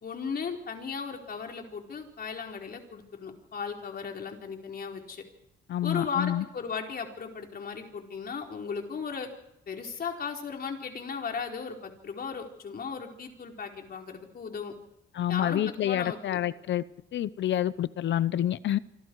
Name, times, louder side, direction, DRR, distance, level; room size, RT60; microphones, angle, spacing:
voice 1, 0.0-5.2 5.8-9.3 9.7-14.7 15.3-16.4, left 6 dB, 50° left, 4.6 m, -36 dB
voice 2, 5.7-6.4 15.1-16.8 17.1-18.8, left 11 dB, 65° left, 0.8 m, -28 dB
26.5 x 26.0 x 4.8 m
cardioid pair, 90°, 20 cm